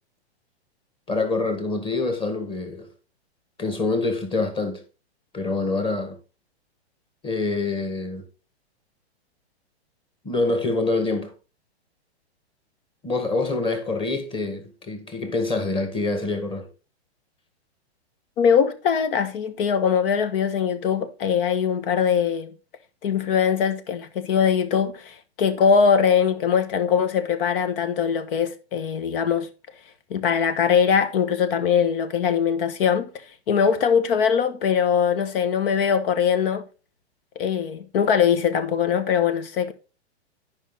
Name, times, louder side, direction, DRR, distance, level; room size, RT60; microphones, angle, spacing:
voice 1, 1.1-2.9 3.6-4.8 5.3-6.2 7.2-8.3 10.2-11.3 13.0-16.7, left 3 dB, 15° left, 1.7 m, -26 dB
voice 2, 18.4-22.5 23.0-29.5 30.1-33.1 33.5-36.6 37.4-39.7, left 7 dB, 55° left, 1.3 m, -21 dB
10.0 x 5.5 x 3.9 m
hypercardioid pair, 130°, 33 cm